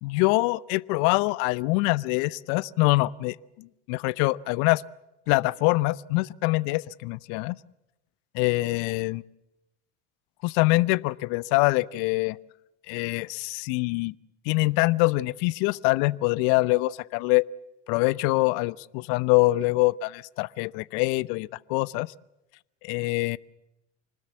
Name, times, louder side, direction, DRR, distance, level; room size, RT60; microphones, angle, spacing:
voice 1, 0.0-4.8 5.3-7.5 8.3-9.2 10.4-12.4 12.9-14.1 14.5-17.4 17.9-22.1 22.8-23.4, left 22 dB, 60° left, 22 dB, 0.8 m, -24 dB
26.0 x 20.0 x 7.2 m, 0.89 s
hypercardioid pair, 75°, 36 cm